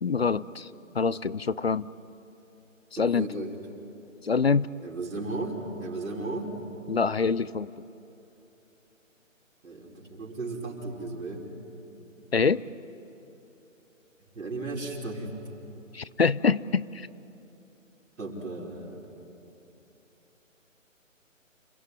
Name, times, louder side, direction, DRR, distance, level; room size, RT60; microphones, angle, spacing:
voice 1, 0.0-0.7 0.9-1.9 3.0-3.3 4.2-4.7 6.9-7.7 12.3-12.6 15.9-17.1, left 5 dB, 50° left, 19 dB, 0.5 m, -25 dB
voice 2, 3.0-3.5 4.8-6.5 9.6-11.5 14.3-15.3 18.2-19.0, right 2 dB, 80° right, -2 dB, 5.4 m, -35 dB
28.5 x 16.5 x 9.8 m, 2.9 s
hypercardioid pair, 175°, 40 cm